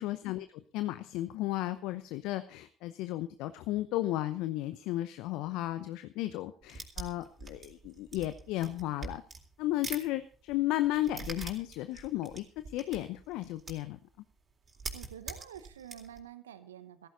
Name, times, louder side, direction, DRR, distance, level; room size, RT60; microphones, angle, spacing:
voice 1, 0.0-9.2 9.6-14.0, left 15 dB, 65° left, 12 dB, 0.8 m, -34 dB
sound 1, 6.6-10.1 10.3-14.0 14.3-14.4 14.6-16.2, right 4 dB, 35° right, 3.9 m, -43 dB
voice 2, 14.9-17.1, right 10 dB, 85° right, 12 dB, 0.9 m, -48 dB
15.5 x 15.0 x 4.0 m, 0.42 s
hypercardioid pair, 55°, 0 cm